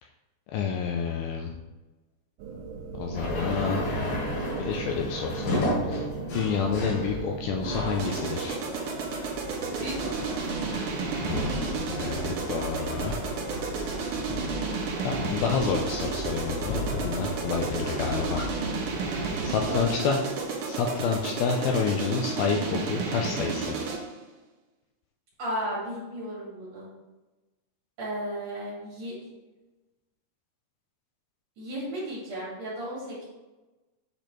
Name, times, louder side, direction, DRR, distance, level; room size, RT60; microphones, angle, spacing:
voice 1, 0.5-1.5 3.0-3.9 4.6-6.1 6.3-8.6 11.9-13.2 15.0-18.5 19.1-20.3 20.7-23.8, left 6 dB, 90° left, 1 dB, 2.2 m, -29 dB
sound 1, 2.4-8.2, right 6 dB, 85° right, 1.8 m, -38 dB
sound 2, 3.1-19.8, left 1 dB, 60° left, 4.2 m, -34 dB
sound 3, 8.0-24.2, right 5 dB, 70° right, 2.0 m, -32 dB
voice 2, 9.7-10.7 17.8-18.3 19.7-20.1 25.4-26.9 28.0-29.1 31.6-33.2, right 1 dB, 45° right, -7 dB, 3.3 m, -35 dB
8.1 x 4.4 x 4.5 m, 1.1 s
omnidirectional pair, 4.9 m